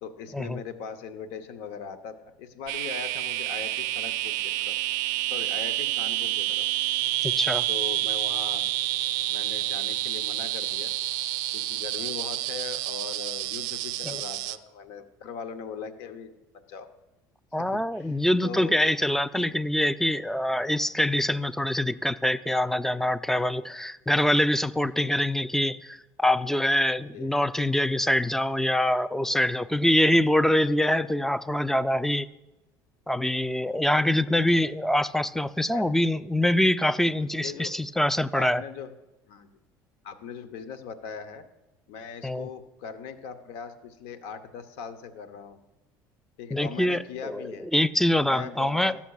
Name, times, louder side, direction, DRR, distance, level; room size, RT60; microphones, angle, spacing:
voice 1, 0.0-4.8 5.3-6.8 7.7-8.6 9.3-10.9 11.5-16.9 17.6-18.8 19.3-19.5 27.1-27.3 35.7-35.8 37.4-37.7 38.3-38.9 39.2-39.5 40.0-41.4 41.9-45.6 46.4-47.7 48.3-49.0, left 6 dB, 75° left, 10 dB, 0.8 m, -40 dB
sound 1, 2.7-14.6, right 16 dB, 80° right, 0.4 m, -29 dB
voice 2, 7.2-7.7 14.0-14.2 17.5-32.3 33.1-38.6 42.2-42.5 46.5-49.0, left 1 dB, 5° left, 15 dB, 0.4 m, -24 dB
14.0 x 7.2 x 2.4 m, 0.96 s
hypercardioid pair, 75°, 10 cm